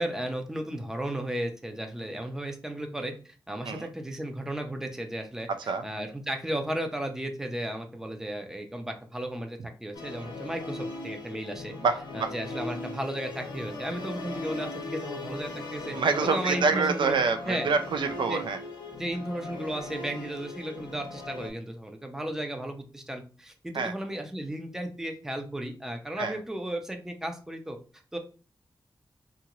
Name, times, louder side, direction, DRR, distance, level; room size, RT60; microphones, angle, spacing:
voice 1, 0.0-11.7 12.1-16.0 16.2-17.1 17.5-17.7 18.3-18.4 19.0-27.8 28.1-28.2, right 1 dB, 5° right, 4 dB, 0.4 m, -34 dB
Musical instrument, 9.9-21.5, left 3 dB, 75° left, 0.7 m, -39 dB
voice 2, 11.8-12.3 15.9-18.6 23.7-23.9 26.2-26.4, right 5 dB, 80° right, 8 dB, 0.3 m, -26 dB
2.7 x 2.5 x 2.9 m, 0.36 s
wide cardioid pair, 170°, 8 cm